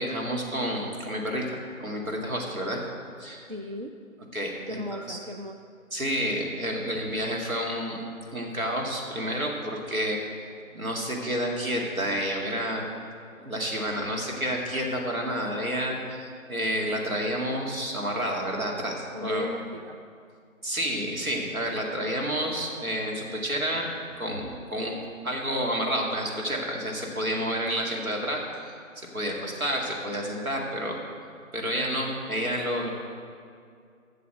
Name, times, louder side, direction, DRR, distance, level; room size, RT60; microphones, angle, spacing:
voice 1, 0.0-2.8 3.2-3.5 4.3-5.2 5.9-8.0 8.3-10.2 10.7-12.9 13.4-19.5 20.6-23.9 24.2-31.0 31.5-32.9, equal, 85° right, 0 dB, 2.3 m, -30 dB
voice 2, 3.5-3.9 4.7-5.6 19.1-20.0, left 1 dB, 45° right, 5 dB, 0.4 m, -35 dB
8.5 x 6.9 x 7.6 m, 2.3 s
figure-of-eight pair, 155°, 41 cm